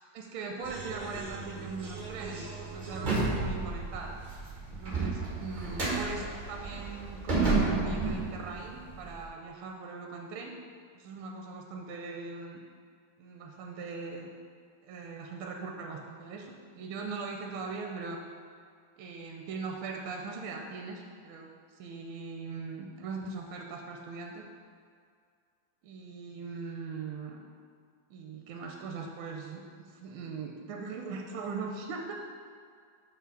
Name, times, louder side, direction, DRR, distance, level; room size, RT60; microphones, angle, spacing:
voice 1, 0.0-10.6 10.9-12.6 13.2-14.3 14.8-18.2 19.0-21.5 21.8-24.4 25.8-27.4 28.1-32.1, right 4 dB, 75° right, 2 dB, 1.4 m, -40 dB
sound 1, 0.6-9.2, right 3 dB, 25° right, 1.2 m, -33 dB
6.2 x 5.8 x 4.7 m, 2.2 s
omnidirectional pair, 2.4 m